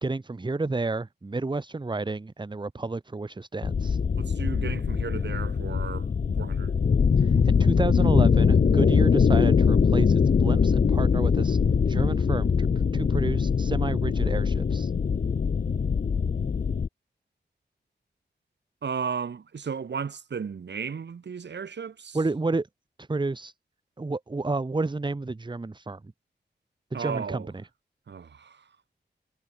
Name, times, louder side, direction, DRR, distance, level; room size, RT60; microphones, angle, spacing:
voice 1, 0.0-4.0 7.2-11.6 11.8-12.7 12.9-14.9 22.1-22.7 23.0-23.5 24.0-26.0 26.9-27.7, right 3 dB, 25° right, 1.0 m, -30 dB
sound 1, 3.6-16.9, left 6 dB, 50° left, 0.6 m, -22 dB
voice 2, 4.2-6.1 6.4-6.7 18.8-22.2 26.9-27.5 28.1-28.6, right 6 dB, 85° right, 1.4 m, -34 dB
wide cardioid pair, 90°, 18 cm